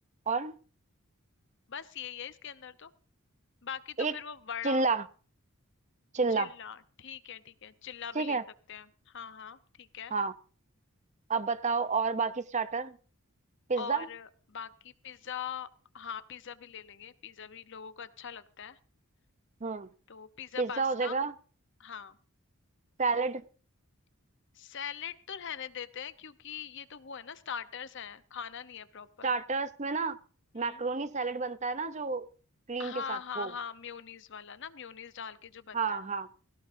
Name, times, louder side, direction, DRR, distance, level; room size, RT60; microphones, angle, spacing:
voice 1, 1.7-2.9 3.6-4.8 6.3-8.4 8.7-10.1 13.8-15.7 15.9-18.8 20.1-21.2 21.8-22.2 24.5-29.3 30.6-30.8 32.8-36.0, left 7 dB, 55° left, 0.8 m, -42 dB
voice 2, 4.6-5.0 6.1-6.5 8.1-8.4 10.1-10.3 11.3-13.0 13.7-14.1 19.6-19.9 20.6-21.3 23.0-23.4 29.2-30.2 30.5-32.3 32.7-33.5 35.7-36.3, right 4 dB, 30° right, 0.6 m, -30 dB
17.5 x 17.0 x 2.6 m
head